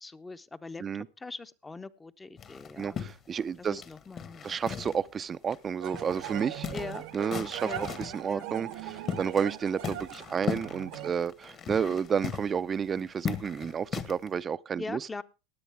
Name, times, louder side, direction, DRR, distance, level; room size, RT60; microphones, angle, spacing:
voice 1, 0.0-0.8 1.2-3.0 3.6-4.5 6.7-7.1 7.6-7.8 8.3-8.4 14.8-15.2, left 3 dB, 15° left, 0.8 m, -41 dB
sound 1, 2.4-5.2 5.5-5.6 5.9-8.2 8.7-9.5 9.8-14.3, left 7 dB, 35° left, 1.4 m, -38 dB
voice 2, 2.8-3.8 4.4-6.7 7.1-7.7 8.0-15.2, right 7 dB, 30° right, 0.5 m, -31 dB
sound 2, 5.8-11.1, right 14 dB, 60° right, 0.9 m, -40 dB
16.5 x 10.0 x 3.4 m
hypercardioid pair, 100°, 0 cm